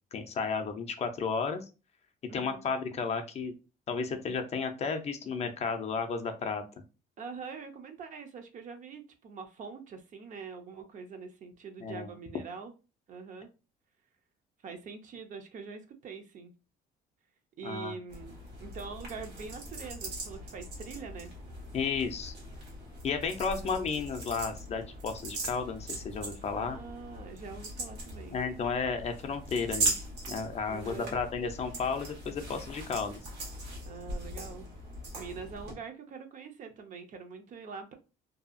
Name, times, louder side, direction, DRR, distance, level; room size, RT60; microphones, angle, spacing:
voice 1, 0.1-1.6 2.3-3.5 3.9-6.6 11.8-12.1 17.6-18.0 21.7-22.3 23.0-26.8 28.3-29.9 30.2-33.2, left 5 dB, 40° left, 6 dB, 0.4 m, -33 dB
voice 2, 2.3-2.7 7.2-12.7 13.1-13.5 14.6-16.5 17.6-21.3 23.4-23.9 26.5-28.4 30.7-31.2 33.9-34.7 35.2-37.9, right 5 dB, 50° right, 6 dB, 0.6 m, -44 dB
sound 1, 18.1-35.7, right 2 dB, 80° right, 1.2 m, -40 dB
2.7 x 2.3 x 2.5 m, 0.31 s
cardioid pair, 110°, 17 cm